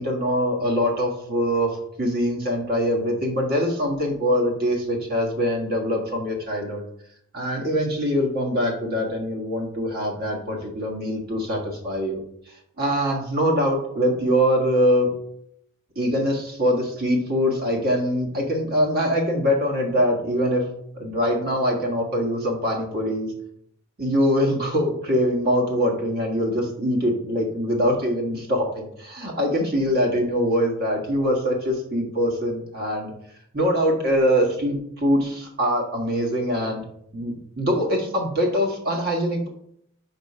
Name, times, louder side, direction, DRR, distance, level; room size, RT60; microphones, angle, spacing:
voice 1, 0.0-6.8 7.3-15.1 15.9-20.7 20.9-23.3 24.0-33.1 33.5-36.8 37.1-39.5, equal, 45° right, 1 dB, 1.6 m, -23 dB
5.2 x 4.9 x 5.5 m, 0.73 s
head